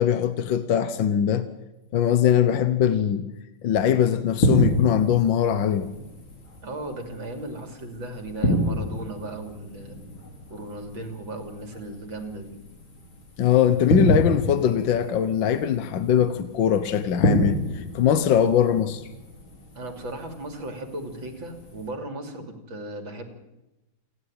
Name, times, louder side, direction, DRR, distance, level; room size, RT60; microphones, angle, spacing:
voice 1, 0.0-1.5 1.9-3.3 3.6-5.9 13.4-19.0, left 9 dB, 70° left, 1.7 m, -21 dB
sound 1, 4.3-21.9, left 1 dB, 90° left, 4.4 m, -29 dB
voice 2, 6.6-10.0 10.5-12.6 19.8-23.2, right 2 dB, 75° right, 3.7 m, -36 dB
28.0 x 11.5 x 8.9 m
omnidirectional pair, 2.1 m